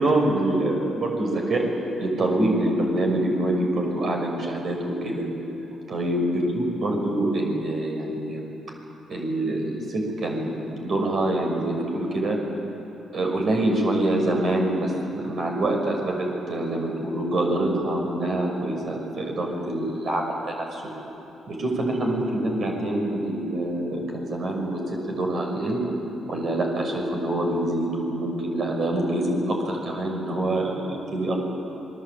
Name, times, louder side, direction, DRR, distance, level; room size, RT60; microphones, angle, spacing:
voice 1, 0.0-1.6 2.0-5.2 5.9-8.4 9.1-12.4 13.1-20.8 21.5-25.8 26.2-31.4, right 1 dB, 50° right, 1 dB, 6.3 m, -25 dB
28.0 x 21.0 x 8.7 m, 2.9 s
cardioid pair, 90°, 0 cm